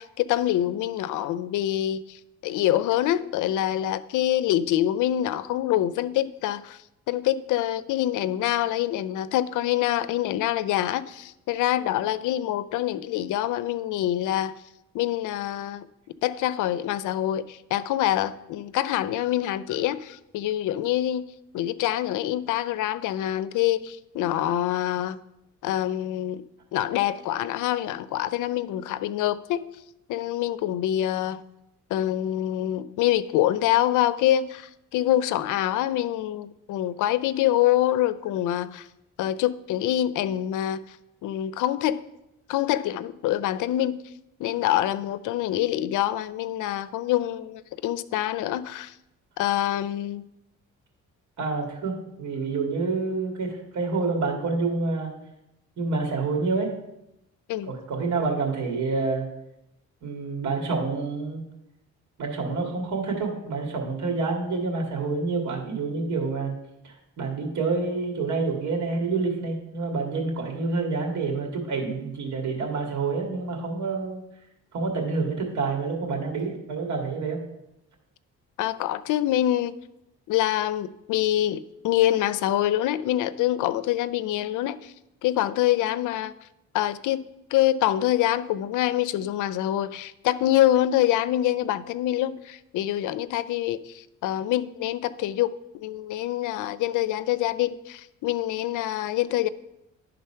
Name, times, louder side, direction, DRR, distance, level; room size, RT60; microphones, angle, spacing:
voice 1, 0.0-6.8 7.1-14.5 14.9-15.9 16.2-21.2 21.5-25.2 25.6-26.4 26.7-29.7 30.1-31.4 31.9-38.9 39.2-41.0 41.2-42.0 42.5-44.0 44.4-48.9 49.4-50.2 57.5-57.7 78.6-79.7 80.3-84.9 85.2-86.3 86.7-99.5, left 13 dB, 85° left, 0.5 m, -25 dB
voice 2, 51.4-55.1 55.8-56.7 57.7-59.3 60.0-61.4 62.2-66.5 66.8-74.2 74.7-77.4, right 4 dB, 70° right, 2.2 m, -28 dB
11.0 x 3.9 x 5.6 m
cardioid pair, 90°, 30 cm